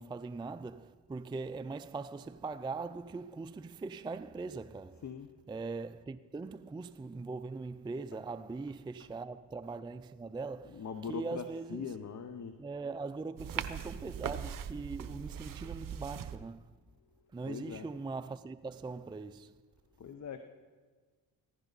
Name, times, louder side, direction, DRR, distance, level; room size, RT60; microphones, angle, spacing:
voice 1, 0.0-5.0 5.5-11.9 12.6-16.7 17.3-19.6, right 3 dB, 10° right, 0.4 m, -41 dB
voice 2, 10.7-12.6 17.5-17.9 20.0-20.4, left 6 dB, 40° left, 0.9 m, -41 dB
sound 1, 13.4-16.4, right 9 dB, 50° right, 0.9 m, -40 dB
15.5 x 15.0 x 4.1 m
supercardioid pair, 60°, 42 cm